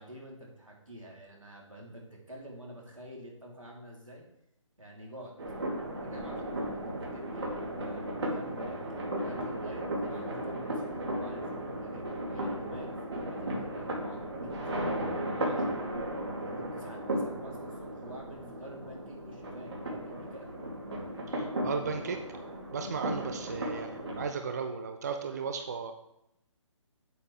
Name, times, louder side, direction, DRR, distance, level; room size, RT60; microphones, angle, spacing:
voice 1, 0.0-4.2 4.8-5.3 6.0-8.8 9.2-15.8 16.4-20.5 23.6-23.9, equal, 85° right, -3 dB, 3.2 m, -48 dB
sound 1, 5.4-24.2, right 1 dB, 55° right, 2.7 m, -35 dB
voice 2, 21.3-22.2 22.7-25.9, right 5 dB, 30° right, 6 dB, 0.5 m, -35 dB
8.4 x 8.3 x 3.4 m, 0.81 s
figure-of-eight pair, 140°, 17 cm